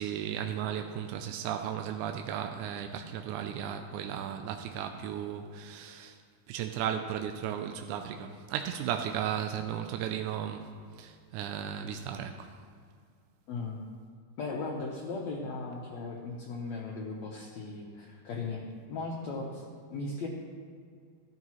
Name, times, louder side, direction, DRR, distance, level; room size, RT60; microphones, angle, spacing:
voice 1, 0.0-6.2 6.5-12.5, right 9 dB, 80° right, 5 dB, 1.9 m, -35 dB
voice 2, 13.5-13.8 14.4-19.6 19.9-20.3, left 3 dB, 65° left, -2 dB, 2.0 m, -37 dB
15.5 x 11.5 x 3.1 m, 2.2 s
omnidirectional pair, 3.9 m